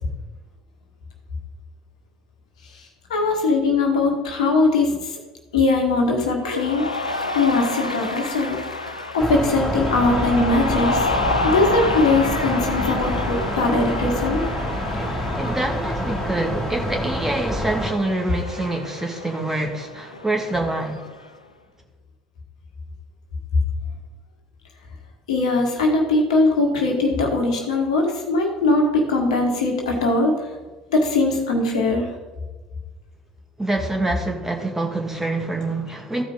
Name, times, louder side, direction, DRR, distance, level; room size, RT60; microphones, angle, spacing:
voice 1, 3.1-4.9 5.5-6.8 7.3-8.6 8.9-11.0 11.4-14.4 25.3-30.3 30.9-32.1, left 3 dB, 75° left, 1 dB, 1.7 m, -20 dB
Cheering, 6.4-21.3, left 2 dB, 90° left, 0.5 m, -29 dB
sound 1, 9.2-17.9, equal, 10° left, 3.2 m, -27 dB
voice 2, 14.9-21.0 33.6-36.2, right 2 dB, 10° right, 1 dB, 2.0 m, -26 dB
14.0 x 5.0 x 5.1 m, 1.2 s
figure-of-eight pair, 60°, 4 cm